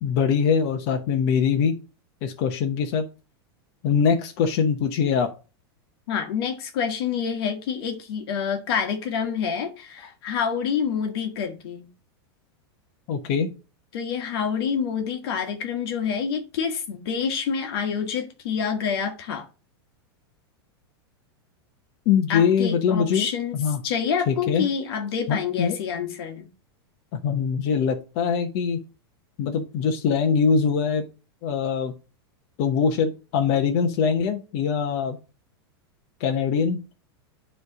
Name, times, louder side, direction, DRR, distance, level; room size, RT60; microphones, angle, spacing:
voice 1, 0.0-1.8 2.2-3.1 3.8-5.3 13.1-13.5 22.1-23.8 24.3-24.7 25.3-25.8 27.1-28.8 29.4-31.0 31.4-31.9 32.6-35.2 36.2-36.8, left 6 dB, 50° left, 1.0 m, -23 dB
voice 2, 6.1-11.9 13.9-19.5 22.3-23.6 23.8-26.5, left 7 dB, 70° left, 1.4 m, -27 dB
9.5 x 3.3 x 4.7 m
supercardioid pair, 135°, 13 cm